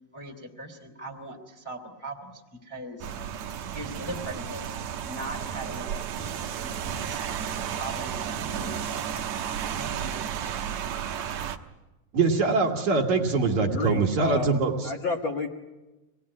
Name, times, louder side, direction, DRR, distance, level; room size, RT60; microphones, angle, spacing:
voice 1, 0.1-3.1 3.7-4.7 5.0-7.2 7.7-9.3 9.7-10.1, right 1 dB, 10° left, 3 dB, 1.8 m, -40 dB
Rain, 3.0-11.6, right 8 dB, 70° right, 1.7 m, -33 dB
voice 2, 12.1-14.9, right 4 dB, 55° right, 2 dB, 2.9 m, -23 dB
voice 3, 13.6-15.5, left 5 dB, 55° left, 2 dB, 1.3 m, -31 dB
25.5 x 19.5 x 9.9 m, 1.1 s
omnidirectional pair, 4.5 m